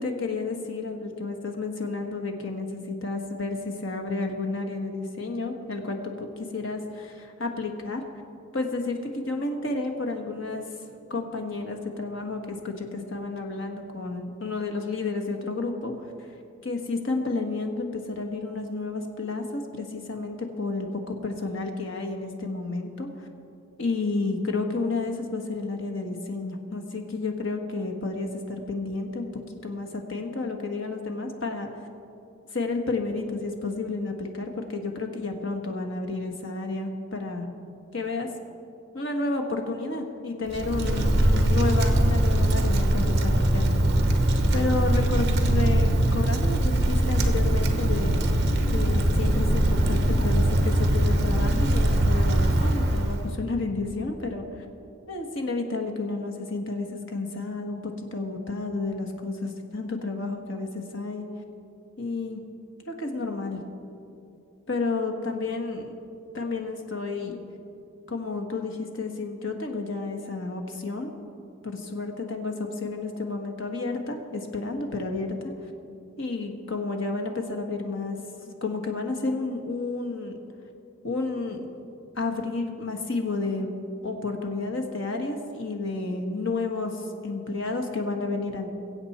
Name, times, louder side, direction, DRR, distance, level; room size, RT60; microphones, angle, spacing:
voice 1, 0.0-8.0 8.5-10.6 11.1-15.9 16.6-23.3 23.8-29.3 29.6-31.7 32.5-37.5 37.9-38.3 38.9-43.7 44.5-48.1 48.7-54.5 55.1-61.2 62.0-62.4 62.9-63.6 64.7-65.9 66.3-67.4 68.1-71.1 71.6-75.5 76.2-78.2 78.5-80.4 81.0-81.7 82.1-88.7, left 3 dB, 65° left, 4 dB, 1.3 m, -31 dB
Wind, 40.5-53.3, right 1 dB, 50° right, 1.0 m, -22 dB
22.0 x 7.9 x 4.3 m, 2.7 s
head